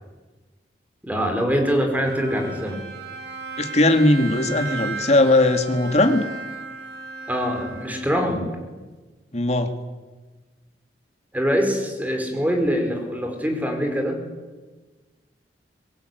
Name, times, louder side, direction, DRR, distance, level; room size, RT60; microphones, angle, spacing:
voice 1, 1.0-2.8 7.3-8.5 11.3-14.2, equal, 10° right, 4 dB, 5.2 m, -23 dB
Bowed string instrument, 2.0-8.5, right 3 dB, 70° right, 3.8 m, -35 dB
voice 2, 3.6-6.3 9.3-9.7, left 2 dB, 40° left, 6 dB, 2.5 m, -19 dB
23.5 x 21.0 x 9.5 m, 1.3 s
head